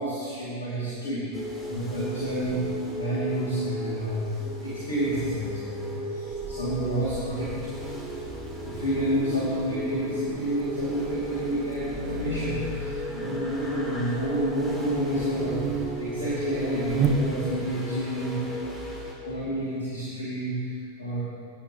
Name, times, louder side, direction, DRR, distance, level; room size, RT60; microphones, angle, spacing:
voice 1, 0.0-2.6 2.9-4.3 4.6-7.6 8.6-18.4 19.2-21.2, right 1 dB, 70° left, -9 dB, 3.1 m, -29 dB
sound 1, 1.3-19.1, left 1 dB, 10° left, 2.8 m, -36 dB
Buzz, 6.3-17.7, right 5 dB, 30° right, 0.8 m, -35 dB
19.0 x 9.0 x 3.3 m, 2.2 s
figure-of-eight pair, 90°, 0 cm